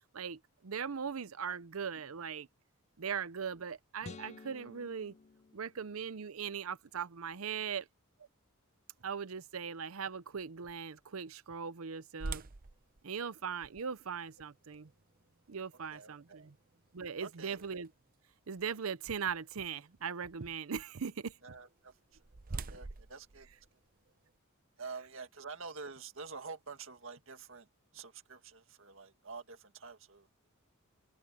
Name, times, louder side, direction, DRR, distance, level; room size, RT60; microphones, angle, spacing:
voice 1, 0.1-2.5 3.0-5.1 5.5-7.9 9.0-12.4 13.0-14.9 15.5-16.5 16.9-17.9 18.5-21.4, right 6 dB, 85° right, 0.7 m, -39 dB
sound 1, 4.0-6.4, left 4 dB, 30° left, 0.4 m, -52 dB
sound 2, 12.2-18.1 18.7-18.8 19.4-19.6 21.7-24.4, right 3 dB, 40° right, 0.7 m, -47 dB
voice 2, 15.9-16.5 17.2-17.7 21.4-22.2 22.5-23.5 24.8-27.7 27.9-30.3, right 4 dB, 65° right, 2.0 m, -48 dB
head